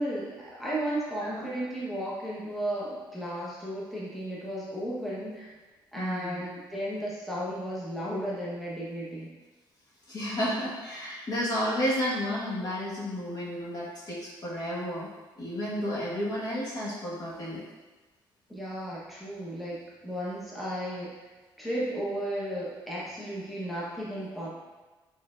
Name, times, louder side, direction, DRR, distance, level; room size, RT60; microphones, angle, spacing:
voice 1, 0.0-5.5 5.9-9.3 18.5-21.1 21.6-24.5, right 1 dB, ahead, -7 dB, 1.0 m, -34 dB
voice 2, 1.2-1.5 5.9-6.4 10.1-15.1 15.4-17.6, equal, 45° left, -6 dB, 1.4 m, -32 dB
4.3 x 3.8 x 2.4 m, 1.2 s
cardioid pair, 85°, 9 cm